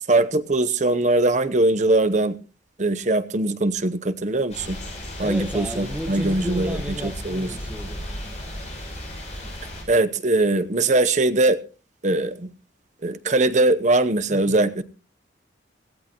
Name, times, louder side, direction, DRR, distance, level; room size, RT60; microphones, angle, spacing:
voice 1, 0.1-2.4 2.8-4.8 5.2-7.5 9.9-11.6 12.0-12.5 13.0-14.8, right 2 dB, 40° right, 0.8 m, -21 dB
sound 1, 4.5-9.8, equal, 35° left, 6.2 m, -35 dB
voice 2, 5.2-8.0 14.3-14.6, equal, 5° right, 1.2 m, -33 dB
17.5 x 15.5 x 3.0 m
head